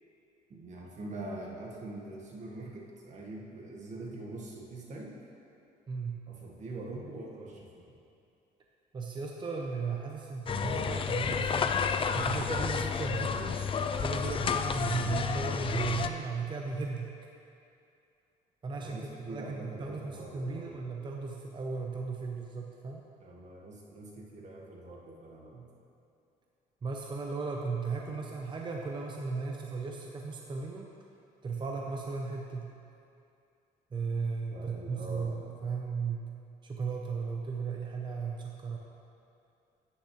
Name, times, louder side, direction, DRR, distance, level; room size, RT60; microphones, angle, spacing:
voice 1, 0.5-5.1 6.3-7.8 18.8-20.7 23.2-25.6 34.5-35.3, right 2 dB, 45° right, -2 dB, 1.7 m, -44 dB
voice 2, 5.9-6.2 8.9-11.8 12.1-13.6 14.0-17.1 18.6-23.0 26.8-30.9 31.4-32.7 33.9-36.2 36.6-38.8, right 4 dB, 30° right, 0 dB, 0.8 m, -36 dB
sound 1, 10.5-16.1, left 6 dB, 30° left, 0.4 m, -31 dB
10.0 x 9.3 x 3.3 m, 2.6 s
cardioid pair, 110°, 17 cm